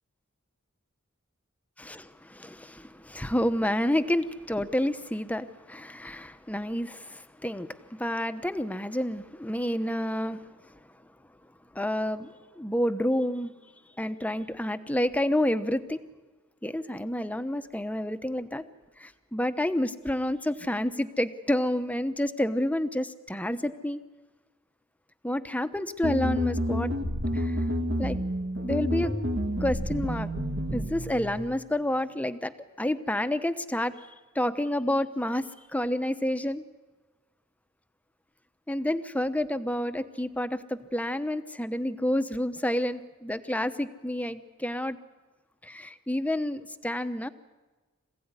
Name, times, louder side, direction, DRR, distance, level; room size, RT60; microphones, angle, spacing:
voice 1, 1.9-10.4 10.7-10.8 11.7-13.5 14.0-16.0 16.6-18.6 19.0-24.0 25.2-26.9 27.3-27.6 28.0-28.2 28.6-29.1 29.6-30.3 30.7-33.9 34.3-36.6 38.7-45.0 45.6-47.3, left 1 dB, 5° left, 10 dB, 1.0 m, -29 dB
sound 1, 26.0-31.4, equal, 60° right, 2.3 m, -29 dB
26.0 x 16.5 x 9.7 m, 1.3 s
head